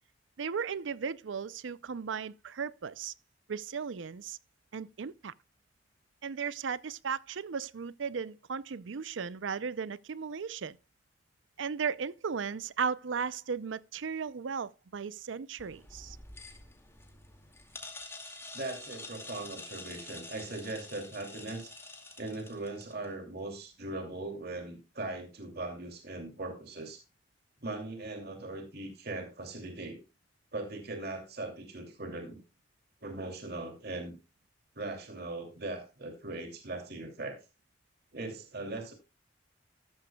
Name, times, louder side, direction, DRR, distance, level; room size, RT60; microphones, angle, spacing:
voice 1, 0.4-3.1 3.5-4.4 4.7-5.3 6.2-10.8 11.6-16.2, right 6 dB, 85° right, 0.5 m, -36 dB
sound 1, 15.6-23.1, left 2 dB, 15° left, 2.2 m, -47 dB
voice 2, 18.5-21.7 22.2-27.0 27.6-30.0 30.5-32.4 33.0-34.2 34.8-37.4 38.1-38.9, right 2 dB, 60° right, 2.6 m, -39 dB
13.5 x 13.0 x 2.3 m
head